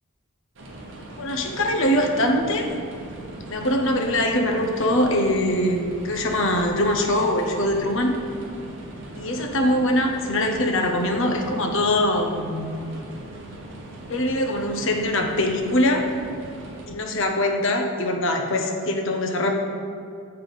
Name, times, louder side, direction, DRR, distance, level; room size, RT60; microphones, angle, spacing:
sound 1, 0.6-16.9, right 1 dB, 55° right, 0.9 m, -39 dB
voice 1, 1.2-2.7 3.5-8.2 9.1-12.7 14.1-16.1 16.9-19.5, left 1 dB, 60° left, 3 dB, 0.7 m, -22 dB
7.4 x 3.4 x 5.3 m, 2.4 s
head